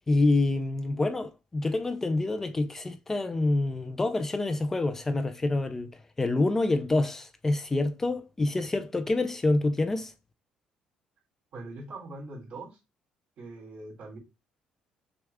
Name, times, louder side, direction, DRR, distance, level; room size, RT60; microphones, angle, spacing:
voice 1, 0.1-5.9 6.2-10.1, left 2 dB, 15° left, 0.4 m, -27 dB
voice 2, 11.5-12.8 13.4-14.2, right 2 dB, 60° right, 2.9 m, -42 dB
6.3 x 2.3 x 3.4 m
cardioid pair, 150°, 3 cm